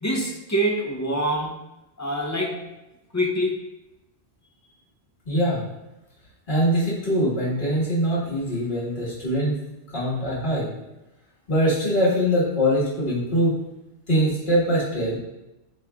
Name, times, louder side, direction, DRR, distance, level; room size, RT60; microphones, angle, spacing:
voice 1, 0.0-1.6 2.0-2.7 3.1-3.6, right 1 dB, 25° left, -1 dB, 0.4 m, -25 dB
voice 2, 5.2-5.6 6.5-9.6 9.9-10.7 11.5-13.6 14.1-15.2, equal, 50° left, -7 dB, 1.6 m, -22 dB
7.3 x 3.1 x 2.3 m, 0.99 s
omnidirectional pair, 1.1 m